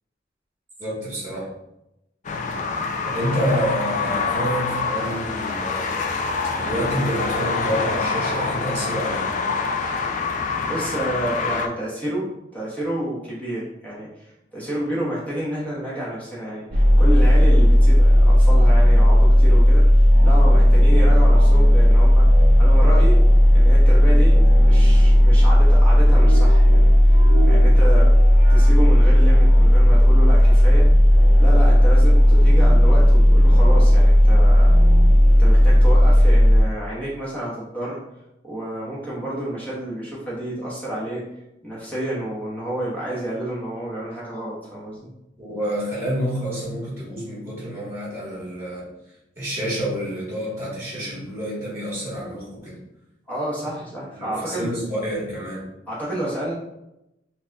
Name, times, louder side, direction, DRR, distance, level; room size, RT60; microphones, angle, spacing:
voice 1, 0.8-1.5 3.0-5.9 6.6-9.4 45.4-48.9 49.4-52.8 54.1-55.7, equal, 15° right, -6 dB, 1.3 m, -28 dB
sound 1, 2.2-11.7, left 4 dB, 45° left, 0.3 m, -26 dB
voice 2, 10.7-14.3 14.5-19.8 20.2-22.3 22.6-23.2 23.5-27.1 27.4-28.1 28.5-30.9 31.4-34.7 35.4-38.0 38.4-41.2 41.6-45.1 53.3-54.7 55.9-56.5, right 1 dB, 10° left, -7 dB, 1.1 m, -29 dB
sound 2, 16.7-36.6, equal, 50° right, 0.6 m, -13 dB
5.1 x 2.6 x 2.3 m, 0.88 s
head